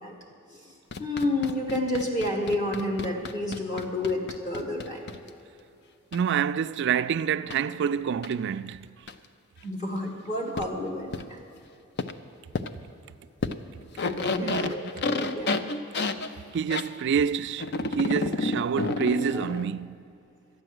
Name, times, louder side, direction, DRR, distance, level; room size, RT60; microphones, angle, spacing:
sound 1, 0.9-5.3 6.1-6.2 7.5-7.6 8.2-8.3 9.1-9.2 10.6-10.7 11.1-11.2 12.0-12.1 12.5-12.7 13.4-13.6 13.8-16.9 17.6-19.7, left 3 dB, 50° left, 0.6 m, -30 dB
voice 1, 1.0-5.0 9.6-11.4 14.0-15.6, left 1 dB, 35° left, 1.7 m, -30 dB
voice 2, 6.1-9.0 14.4-15.0 16.5-20.0, right 7 dB, 55° right, 0.3 m, -28 dB
13.0 x 9.8 x 7.7 m
head